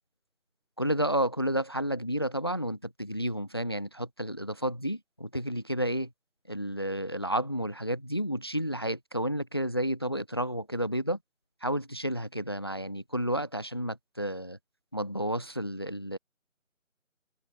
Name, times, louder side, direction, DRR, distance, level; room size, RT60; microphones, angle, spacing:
voice 1, 0.8-6.1 6.5-11.2 11.6-14.6 14.9-16.2, equal, 20° left, 0.9 m, -31 dB
figure-of-eight pair, 165°, 39 cm